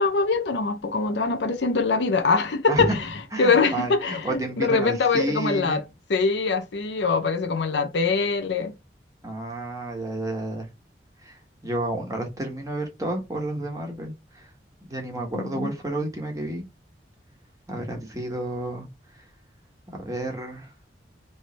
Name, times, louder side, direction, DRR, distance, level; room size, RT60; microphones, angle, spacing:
voice 1, 0.0-3.1 3.4-5.8 6.1-8.7 15.3-15.7, left 4 dB, 75° left, 0.6 m, -23 dB
voice 2, 3.3-5.8 9.2-10.7 11.2-14.5 14.9-16.6 17.7-18.9 19.9-20.7, right 1 dB, 20° right, 1.2 m, -31 dB
3.2 x 3.2 x 4.2 m
head